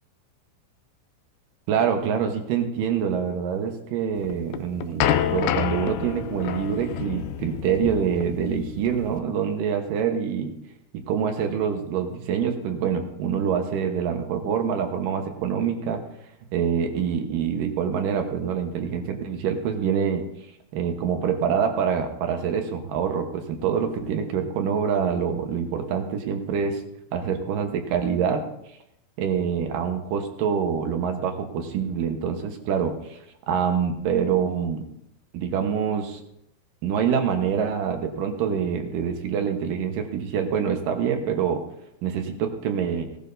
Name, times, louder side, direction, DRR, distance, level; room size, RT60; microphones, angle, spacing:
voice 1, 1.7-10.5 10.9-16.0 16.5-20.3 20.7-26.8 27.1-28.4 29.2-33.2 33.5-34.9 35.3-36.2 36.8-41.6 42.0-43.1, right 7 dB, 70° right, 5 dB, 2.6 m, -25 dB
sound 1, 4.2-9.2, left 10 dB, 90° left, 1.7 m, -28 dB
17.0 x 12.5 x 2.7 m, 0.78 s
omnidirectional pair, 4.3 m